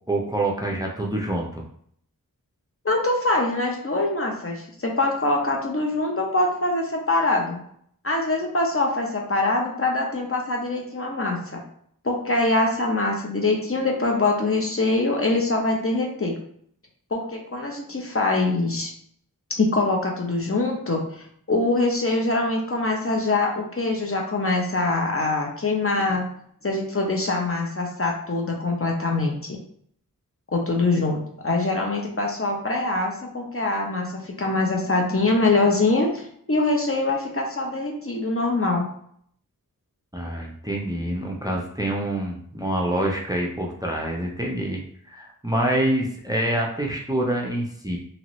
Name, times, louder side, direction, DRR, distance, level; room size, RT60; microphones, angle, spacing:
voice 1, 0.1-1.6 40.1-44.8 45.1-48.0, right 1 dB, 10° right, -1 dB, 0.5 m, -26 dB
voice 2, 2.8-7.6 8.0-11.6 12.0-16.4 17.1-18.9 19.5-26.2 26.6-29.6 30.5-38.9, left 2 dB, 40° left, 0 dB, 0.7 m, -24 dB
2.9 x 2.6 x 3.0 m, 0.65 s
wide cardioid pair, 45°, 36 cm